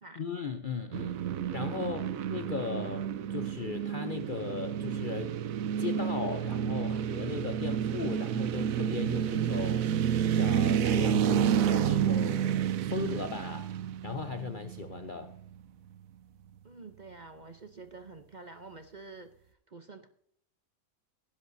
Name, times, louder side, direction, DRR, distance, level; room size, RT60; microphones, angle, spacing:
voice 1, 0.2-1.2 1.5-5.3 5.8-10.0 10.3-12.6 12.8-13.7 14.0-15.3, left 6 dB, 50° left, 8 dB, 0.6 m, -37 dB
sound 1, 0.9-15.1, right 9 dB, 70° right, 1.0 m, -30 dB
voice 2, 16.6-19.3 19.7-20.1, right 3 dB, 40° right, 7 dB, 0.7 m, -48 dB
18.5 x 10.5 x 2.7 m, 0.65 s
omnidirectional pair, 1.6 m